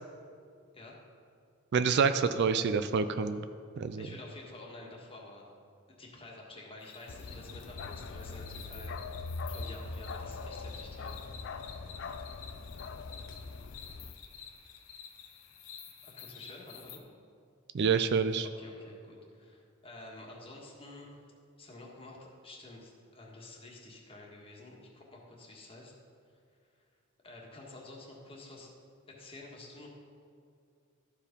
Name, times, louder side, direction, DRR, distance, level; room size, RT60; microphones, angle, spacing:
voice 1, 1.7-3.4 3.8-4.1 17.7-18.5, right 5 dB, 55° right, 10 dB, 0.4 m, -27 dB
voice 2, 4.0-5.4 5.9-11.2 16.0-17.0 18.4-21.2 21.6-25.9 27.2-28.7 29.1-29.9, left 2 dB, 25° left, -2 dB, 1.5 m, -50 dB
sound 1, 6.8-17.0, left 8 dB, 75° left, 0.9 m, -51 dB
Bark, 7.1-14.1, left 3 dB, 60° left, 0.5 m, -42 dB
13.0 x 4.9 x 5.2 m, 2.3 s
head